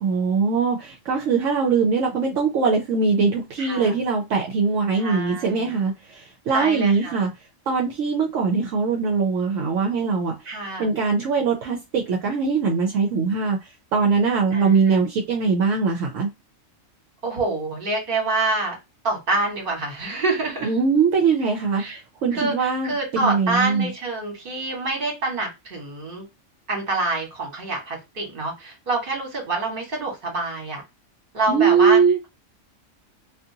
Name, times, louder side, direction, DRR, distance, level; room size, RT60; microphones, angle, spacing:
voice 1, 0.0-7.3 7.7-10.3 10.8-13.6 13.9-16.3 20.6-21.8 22.2-23.9 31.5-32.2, right 5 dB, 75° right, 1.0 m, -21 dB
voice 2, 3.6-4.0 5.0-5.7 6.5-7.2 10.4-10.9 14.5-15.0 17.2-18.8 19.0-20.7 21.8-22.0 22.3-26.2 26.7-30.8 31.3-32.0, right 2 dB, 45° right, 1.4 m, -26 dB
2.5 x 2.5 x 2.7 m
omnidirectional pair, 1.4 m